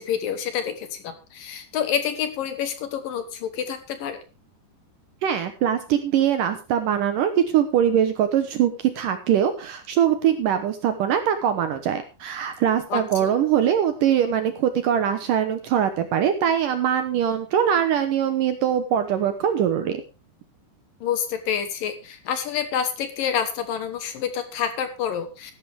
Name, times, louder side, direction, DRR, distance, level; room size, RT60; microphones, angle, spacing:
voice 1, 0.0-4.2 12.9-13.3 21.0-25.5, left 8 dB, 65° left, 9 dB, 2.6 m, -28 dB
voice 2, 5.2-20.0, right 9 dB, 70° right, 9 dB, 2.2 m, -22 dB
14.5 x 12.0 x 3.5 m, 0.31 s
omnidirectional pair, 4.8 m